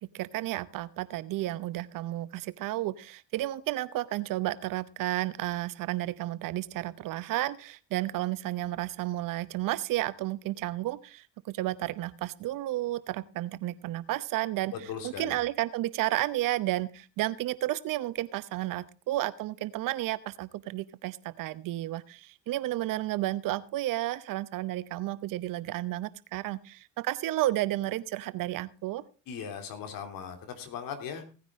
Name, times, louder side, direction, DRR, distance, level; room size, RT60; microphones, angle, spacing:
voice 1, 0.1-29.0, right 15 dB, 60° right, 17 dB, 0.8 m, -32 dB
voice 2, 14.7-15.4 29.3-31.2, left 7 dB, 60° left, 6 dB, 3.0 m, -38 dB
17.0 x 9.6 x 3.7 m, 0.34 s
hypercardioid pair, 75°, 38 cm